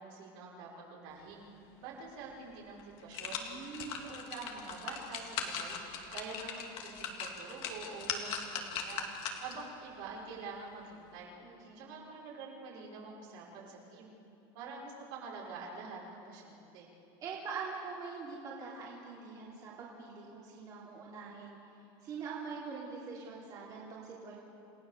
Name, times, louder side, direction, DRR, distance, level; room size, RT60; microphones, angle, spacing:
voice 1, 0.0-1.5 1.8-3.4 3.9-5.8 6.1-9.1 9.4-11.4 11.8-14.1 14.5-16.9, right 4 dB, 70° right, -4 dB, 6.1 m, -46 dB
sound 1, 2.2-2.3 2.8-9.7 10.1-10.2, left 6 dB, 50° left, 2.4 m, -40 dB
voice 2, 3.4-4.0 11.4-11.9 17.2-21.6 22.0-24.4, right 5 dB, 35° right, -5 dB, 3.4 m, -44 dB
29.0 x 17.5 x 6.9 m, 2.7 s
cardioid pair, 165°, 12 cm